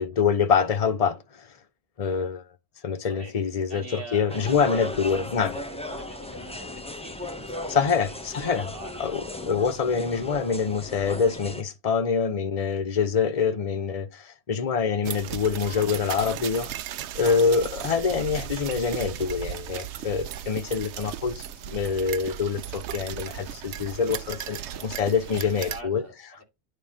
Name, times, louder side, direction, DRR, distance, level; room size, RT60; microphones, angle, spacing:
voice 1, 0.0-1.5 2.0-2.4 2.8-5.6 7.7-8.6 9.0-16.7 17.1-26.0, left 6 dB, 35° left, 0.9 m, -25 dB
voice 2, 3.0-3.3 3.7-4.9 5.2-9.0 17.3-17.5 21.4-21.6 24.6-24.8 25.2-26.4, right 1 dB, 55° right, 3.0 m, -44 dB
sound 1, 4.3-11.6, left 1 dB, 5° left, 0.7 m, -37 dB
sound 2, 15.0-25.8, right 10 dB, 85° right, 0.9 m, -36 dB
9.2 x 3.4 x 5.5 m
omnidirectional pair, 1.1 m